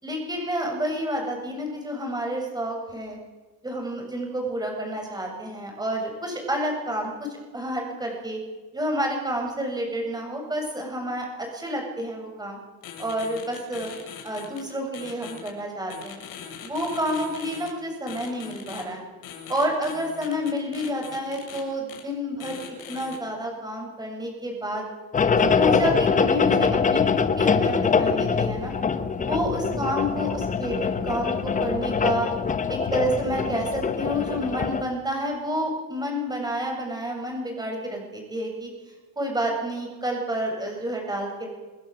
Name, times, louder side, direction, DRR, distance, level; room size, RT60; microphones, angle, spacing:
voice 1, 0.0-3.2 3.6-7.3 7.5-8.4 8.7-12.6 13.0-13.9 14.2-16.2 16.6-19.0 19.5-22.6 22.9-24.9 25.3-28.7 29.2-32.3 32.7-38.7 39.2-41.5, equal, 10° right, 1 dB, 7.6 m, -29 dB
sound 1, 12.8-14.6 14.9-15.5 15.9-17.7 18.1-18.8 19.2-21.6 21.9-22.0 22.4-23.2, left 8 dB, 55° left, 7.2 m, -40 dB
sound 2, 25.1-34.8, left 5 dB, 20° left, 1.2 m, -23 dB
28.5 x 20.0 x 7.9 m, 1.2 s
cardioid pair, 160°, 41 cm